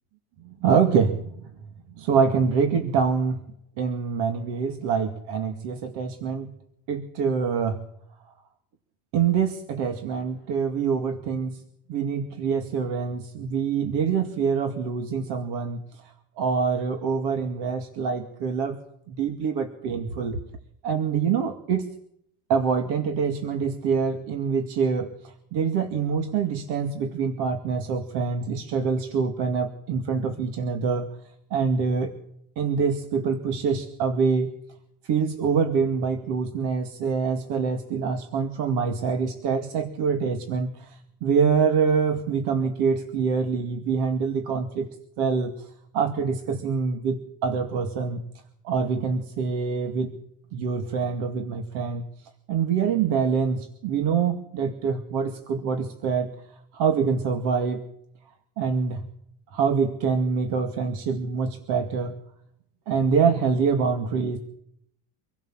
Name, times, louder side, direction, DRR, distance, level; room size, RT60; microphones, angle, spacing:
voice 1, 0.4-1.4 2.0-3.4 3.8-6.5 6.9-7.8 9.1-11.6 11.9-18.8 19.1-20.4 20.8-21.9 22.5-31.1 31.5-32.1 32.6-34.5 35.0-44.9 45.2-48.2 48.6-50.1 50.5-52.1 52.5-56.3 56.7-57.8 58.6-59.0 59.5-62.2 62.9-64.4, right 6 dB, 65° right, 6 dB, 2.3 m, -25 dB
26.0 x 16.0 x 7.4 m, 0.74 s
cardioid pair, 135°, 43 cm